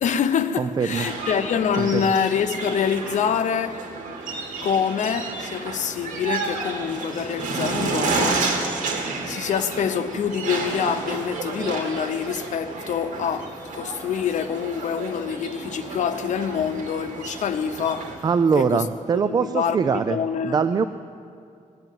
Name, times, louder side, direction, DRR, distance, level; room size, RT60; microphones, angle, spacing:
voice 1, 0.0-3.9 4.6-8.5 9.3-18.3 18.5-20.6, left 7 dB, 70° left, 0.8 m, -26 dB
voice 2, 0.6-1.1 1.8-2.0 18.2-20.2 20.4-20.9, right 6 dB, 30° right, 0.4 m, -22 dB
sound 1, 0.9-18.2, right 4 dB, 85° right, 2.5 m, -31 dB
20.0 x 7.8 x 9.2 m
wide cardioid pair, 160°, 13 cm